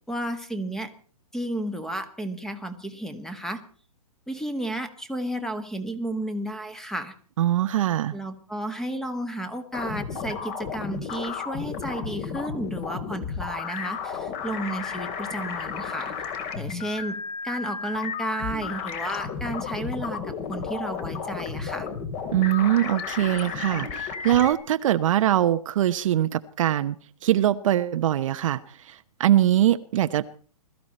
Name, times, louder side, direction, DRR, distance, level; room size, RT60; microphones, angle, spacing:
voice 1, 0.1-0.9 1.3-3.6 4.3-7.1 8.1-16.1 16.5-17.2 17.4-21.9, right 1 dB, ahead, 9 dB, 1.7 m, -32 dB
voice 2, 7.4-8.2 22.3-27.0 27.2-30.2, right 12 dB, 55° right, 11 dB, 1.0 m, -22 dB
sound 1, 9.7-24.5, left 6 dB, 35° left, 3.0 m, -33 dB
21.5 x 14.0 x 4.4 m, 0.42 s
hypercardioid pair, 145°, 20 cm